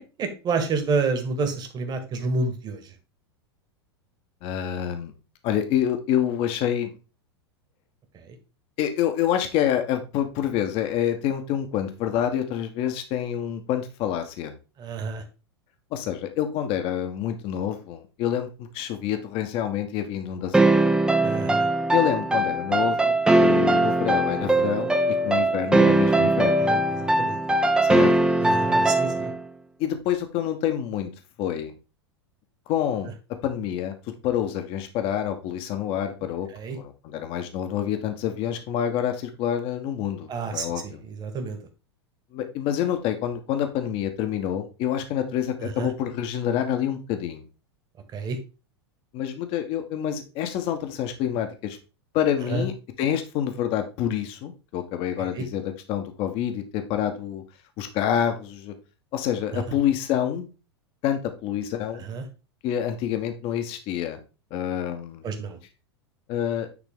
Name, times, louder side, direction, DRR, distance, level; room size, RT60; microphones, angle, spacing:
voice 1, 0.2-2.8 14.8-15.2 21.2-21.7 26.6-27.4 28.4-29.3 36.5-36.8 40.3-41.6 45.6-45.9 48.1-48.4 52.5-52.6 55.4-55.5 59.5-59.6 62.1-62.2 65.2-65.6, right 4 dB, 30° right, 7 dB, 1.8 m, -29 dB
voice 2, 4.4-5.1 5.4-6.9 8.8-14.5 15.9-20.8 21.9-26.7 27.8-28.1 29.8-31.1 31.4-31.7 32.7-33.1 33.4-33.9 34.2-41.0 42.3-47.4 49.1-51.8 52.1-57.4 57.8-58.7 59.1-60.5 61.0-62.1 62.6-64.2 64.5-65.2 66.3-66.7, left 10 dB, 45° left, 7 dB, 1.3 m, -27 dB
sound 1, 20.5-29.4, right 2 dB, 5° right, 0.8 m, -21 dB
9.8 x 4.0 x 3.7 m, 0.31 s
figure-of-eight pair, 90°, 14 cm